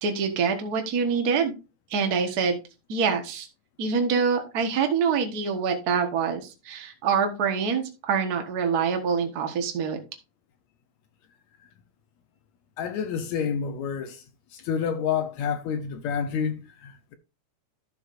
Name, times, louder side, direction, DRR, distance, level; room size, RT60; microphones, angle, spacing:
voice 1, 0.0-1.5 1.9-2.6 2.9-3.5 3.8-10.0, right 6 dB, 50° right, 1.2 m, -25 dB
voice 2, 12.8-14.2 14.5-17.2, left 7 dB, 70° left, 1.9 m, -29 dB
12.5 x 7.1 x 2.6 m
omnidirectional pair, 3.6 m